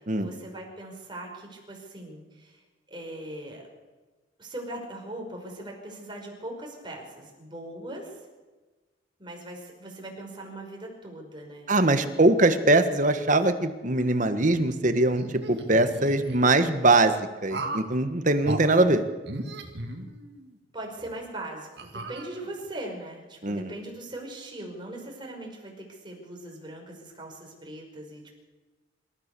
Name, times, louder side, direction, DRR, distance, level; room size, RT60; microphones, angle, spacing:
voice 1, 0.0-2.6 2.9-3.6 4.4-8.2 9.2-12.1 20.7-28.4, right 1 dB, 25° right, 0 dB, 5.6 m, -40 dB
voice 2, 11.7-19.0 23.4-23.7, right 2 dB, 45° right, 9 dB, 1.5 m, -22 dB
sound 1, 15.1-16.6 17.5-17.9 18.4-18.6 19.2-20.5 21.0-21.1 21.8-22.7, right 2 dB, 65° right, 2.4 m, -36 dB
26.5 x 14.5 x 7.0 m, 1.2 s
head